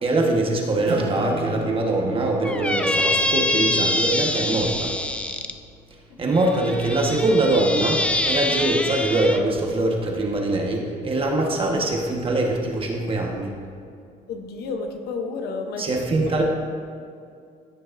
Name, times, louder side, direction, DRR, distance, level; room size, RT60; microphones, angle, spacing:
voice 1, 0.0-4.9 6.2-13.5 15.8-16.4, right 2 dB, 30° right, 0 dB, 1.4 m, -23 dB
Acoustic guitar / Strum, 0.9-5.9, right 2 dB, 75° right, 1.9 m, -36 dB
Squeak, 2.4-5.5 6.3-9.4, left 1 dB, 5° left, 0.4 m, -25 dB
voice 2, 14.3-16.3, left 4 dB, 70° left, 4 dB, 1.0 m, -31 dB
14.5 x 6.5 x 2.6 m, 2.3 s
cardioid pair, 110°, 17 cm